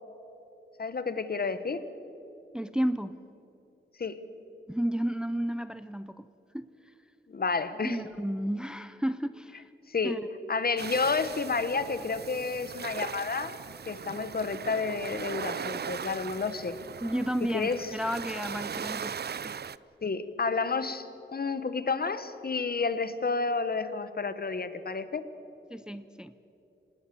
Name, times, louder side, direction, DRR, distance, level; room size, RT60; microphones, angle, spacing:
voice 1, 0.8-1.8 4.0-4.2 7.3-8.0 9.9-10.2 10.5-13.6 13.9-16.8 17.5-17.9 20.0-25.2, left 4 dB, 50° left, 12 dB, 1.3 m, -30 dB
voice 2, 2.5-3.2 4.7-6.3 6.5-6.6 7.8-9.6 10.0-10.2 17.0-19.1 19.4-19.6 25.7-26.3, equal, 5° right, 12 dB, 0.6 m, -32 dB
sound 1, 10.8-19.8, right 7 dB, 50° right, 0.5 m, -39 dB
26.0 x 19.5 x 7.0 m, 3.0 s
wide cardioid pair, 100°, 21 cm